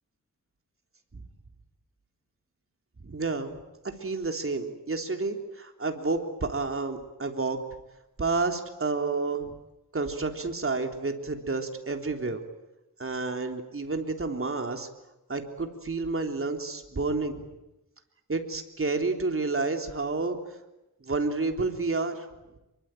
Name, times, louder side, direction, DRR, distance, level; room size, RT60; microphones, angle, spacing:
voice 1, 3.0-3.6 3.8-7.6 8.2-9.6 9.9-12.4 13.0-14.9 15.3-17.4 18.3-20.4 21.0-22.3, right 3 dB, 40° right, 4 dB, 3.7 m, -30 dB
27.0 x 23.5 x 9.2 m, 0.95 s
wide cardioid pair, 85°, 34 cm